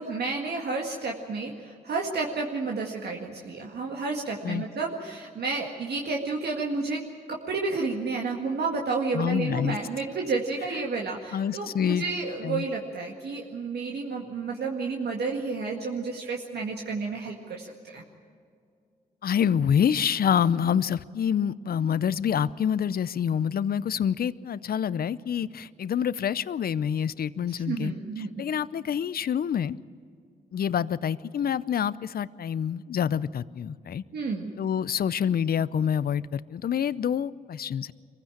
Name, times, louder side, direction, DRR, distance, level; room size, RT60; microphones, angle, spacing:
voice 1, 0.0-7.0 7.3-18.0 27.5-28.3 34.1-34.5, right 4 dB, 75° right, 0 dB, 1.9 m, -31 dB
voice 2, 9.1-9.8 11.3-12.0 12.4-12.6 19.2-27.9 28.4-29.8 30.5-34.0 34.6-37.9, left 8 dB, 60° left, 18 dB, 0.6 m, -27 dB
23.5 x 15.5 x 8.8 m, 2.3 s
cardioid pair, 55°, 17 cm